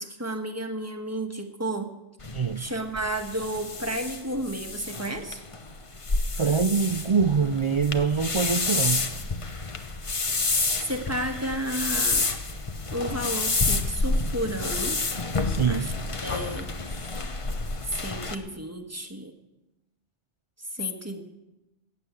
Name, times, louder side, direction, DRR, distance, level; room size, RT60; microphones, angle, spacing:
voice 1, 0.0-1.9 2.6-5.4 10.8-12.2 12.9-15.0 15.7-15.9 16.2-16.7 17.9-19.3 20.6-21.2, right 1 dB, 15° right, 5 dB, 1.4 m, -32 dB
sound 1, 2.2-18.4, left 3 dB, 30° left, 0.9 m, -29 dB
voice 2, 2.3-2.6 6.4-9.1 15.4-15.9, right 5 dB, 50° right, 10 dB, 0.3 m, -24 dB
15.0 x 9.4 x 8.3 m, 0.97 s
omnidirectional pair, 1.2 m